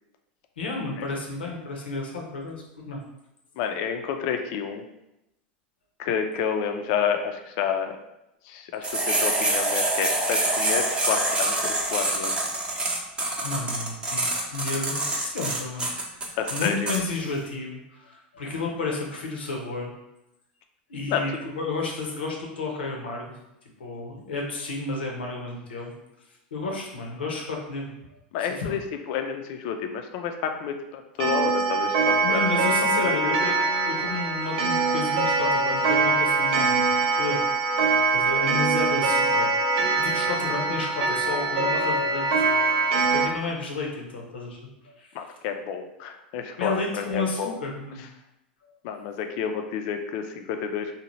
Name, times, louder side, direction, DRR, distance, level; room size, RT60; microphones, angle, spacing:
voice 1, 0.6-3.0 13.4-15.9 16.5-19.9 20.9-23.4 23.8-25.9 26.3-27.9 28.4-28.7 32.2-37.6 38.1-39.5 40.0-42.3 43.1-44.6 44.8-45.1 46.6-48.0, left 3 dB, 90° left, 0 dB, 0.7 m, -32 dB
voice 2, 3.6-4.8 6.0-8.0 8.5-12.4 16.4-16.9 21.1-21.2 28.3-28.8 29.1-32.4 33.0-33.4 39.8-40.0 45.1-47.5 48.8-50.9, left 7 dB, 55° left, 6 dB, 0.4 m, -29 dB
sound 1, 8.8-17.0, right 2 dB, 15° right, 0.6 m, -26 dB
Clock, 31.2-43.3, right 3 dB, 70° right, 0.5 m, -23 dB
2.7 x 2.1 x 3.0 m, 0.87 s
hypercardioid pair, 105°, 5 cm